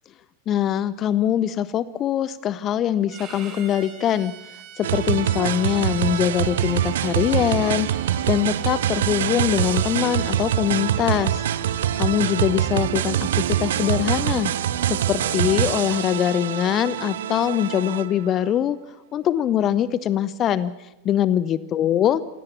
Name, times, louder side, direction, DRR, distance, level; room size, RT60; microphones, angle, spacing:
voice 1, 0.5-4.3 4.8-7.9 8.3-11.4 12.0-14.5 14.9-18.8 19.1-20.7 21.0-22.2, left 10 dB, 30° left, 18 dB, 0.7 m, -23 dB
Bowed string instrument, 3.1-10.3, right 8 dB, 30° right, 5.9 m, -45 dB
sound 1, 4.8-18.3, right 10 dB, 60° right, 1.0 m, -24 dB
26.5 x 17.5 x 7.1 m, 0.92 s
figure-of-eight pair, 90°, 0 cm